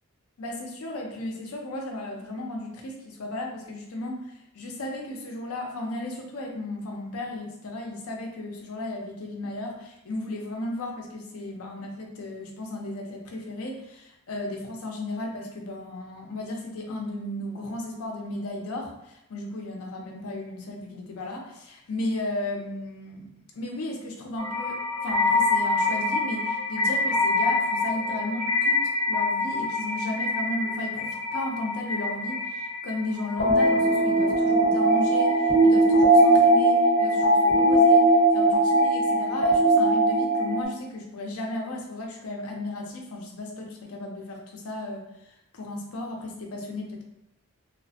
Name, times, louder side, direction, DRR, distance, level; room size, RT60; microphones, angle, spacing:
voice 1, 0.4-38.1 38.3-45.1 45.5-47.0, left 2 dB, 80° left, 1 dB, 0.6 m, -35 dB
sound 1, 24.4-40.6, right 1 dB, 45° left, 1.1 m, -22 dB
3.0 x 2.0 x 2.7 m, 0.83 s
head